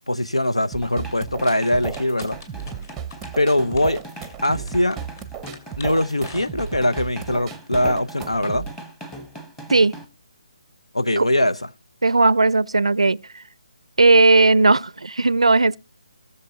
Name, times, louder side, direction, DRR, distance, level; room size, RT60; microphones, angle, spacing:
voice 1, 0.1-2.4 3.4-4.0 4.4-5.0 5.8-8.7 10.9-11.6, left 1 dB, 90° left, 0.8 m, -21 dB
sound 1, 0.7-8.7, right 8 dB, 10° right, 0.7 m, -35 dB
sound 2, 0.8-10.0, right 1 dB, 10° left, 1.2 m, -40 dB
sound 3, 1.1-7.0, left 4 dB, 35° left, 2.3 m, -45 dB
voice 2, 12.0-13.2 14.0-15.8, right 3 dB, 80° right, 0.4 m, -16 dB
18.0 x 6.8 x 2.8 m
figure-of-eight pair, 150°, 3 cm